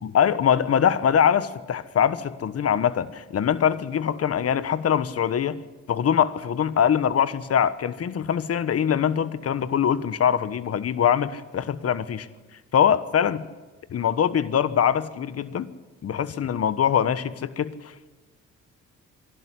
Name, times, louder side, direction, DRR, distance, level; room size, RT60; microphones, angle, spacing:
voice 1, 0.0-5.6 5.9-12.3 12.7-13.4 13.9-15.7 16.0-17.9, left 8 dB, 50° left, 15 dB, 1.2 m, -23 dB
24.5 x 12.0 x 9.9 m, 1.3 s
cardioid pair, 90°, 30 cm